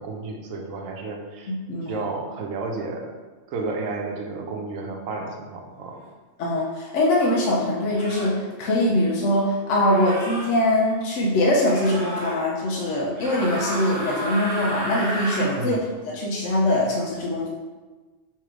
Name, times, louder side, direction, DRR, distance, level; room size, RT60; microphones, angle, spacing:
voice 1, 0.0-1.5 1.8-3.1 3.5-6.0 15.5-15.8, right 3 dB, 90° right, 2 dB, 1.1 m, -32 dB
voice 2, 1.5-2.0 6.4-15.8 16.1-17.5, left 1 dB, 70° left, -4 dB, 1.0 m, -22 dB
sound 1, 6.5-6.7 7.9-8.3 9.8-10.5 11.6-12.4 13.1-15.6, right 1 dB, 45° right, 1.3 m, -32 dB
3.3 x 3.2 x 4.7 m, 1.3 s
omnidirectional pair, 1.3 m